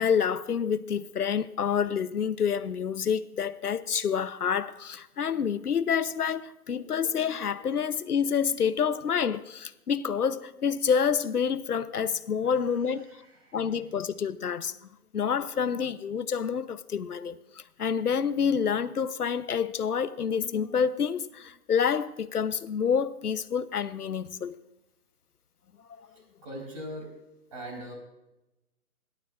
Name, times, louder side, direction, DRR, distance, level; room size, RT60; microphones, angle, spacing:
voice 1, 0.0-13.1 13.5-14.8 15.1-24.5, left 7 dB, 90° left, 0.9 m, -28 dB
voice 2, 12.9-13.6 26.1-27.1 27.5-27.9, equal, 20° right, 4.5 m, -42 dB
28.0 x 12.0 x 2.5 m
hypercardioid pair, 170°, 44 cm